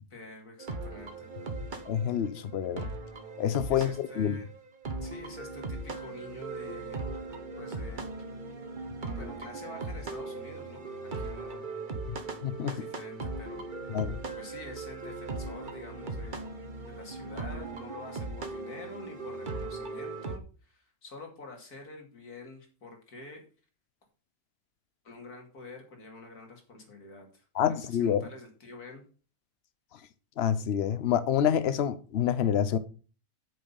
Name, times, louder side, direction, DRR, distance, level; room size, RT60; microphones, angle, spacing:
voice 1, 0.1-1.3 3.7-4.4 5.0-7.0 7.6-8.0 9.2-11.6 12.7-13.6 14.4-16.5 16.8-23.5 25.0-27.5 27.8-29.0, left 2 dB, 80° left, 3.0 m, -47 dB
sound 1, 0.6-20.4, right 3 dB, 35° right, 1.2 m, -39 dB
voice 2, 1.9-2.9 3.4-4.4 12.4-12.7 13.9-14.2 27.5-28.2 30.4-32.8, left 9 dB, 50° left, 0.9 m, -27 dB
8.5 x 6.5 x 5.5 m
omnidirectional pair, 1.6 m